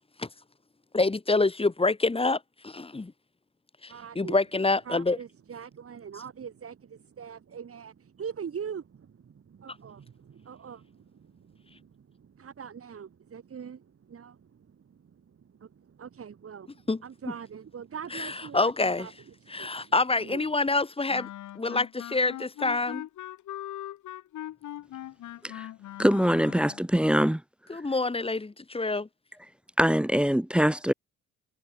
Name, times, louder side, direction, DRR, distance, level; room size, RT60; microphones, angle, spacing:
voice 1, 0.9-3.1 3.8-5.2 16.9-17.0 18.1-19.1 19.5-21.3 21.6-23.1 27.7-29.1, left 3 dB, 20° left, 2.3 m, -27 dB
voice 2, 3.9-4.4 4.9-20.5, right 7 dB, 50° right, 8.0 m, -43 dB
Wind instrument woodwind instrument, 21.1-26.8, left 13 dB, 75° left, 2.7 m, -40 dB
voice 3, 26.0-27.4 29.8-30.9, equal, 5° right, 0.7 m, -23 dB
cardioid pair, 90°, 30 cm